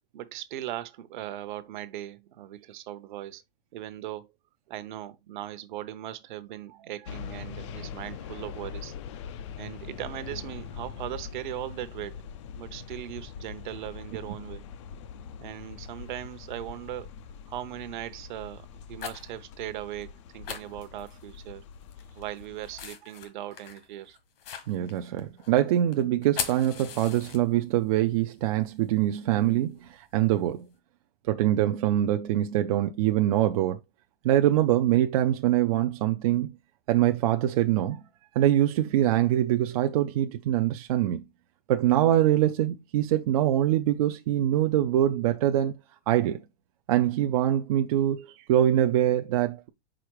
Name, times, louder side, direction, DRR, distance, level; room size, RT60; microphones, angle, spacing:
voice 1, 0.1-3.4 3.7-4.3 4.7-8.9 9.6-12.2 12.6-14.6 15.4-17.1 17.5-21.6 22.1-24.2, right 13 dB, 55° right, 0.8 m, -39 dB
sound 1, 7.1-22.9, left 7 dB, 30° left, 0.4 m, -43 dB
sound 2, 15.8-15.9 16.7-17.1 17.5-17.8 18.6-19.4 19.7-19.8 20.0-20.1 20.4-21.5 21.8-27.8 28.2-30.7, left 7 dB, 70° left, 1.6 m, -40 dB
voice 2, 24.7-30.7 31.3-33.8 34.2-36.5 36.9-38.0 38.4-41.2 41.7-45.7 46.1-46.4 46.9-49.7, right 12 dB, 40° right, 0.4 m, -24 dB
5.0 x 4.6 x 4.6 m
supercardioid pair, 165°, 29 cm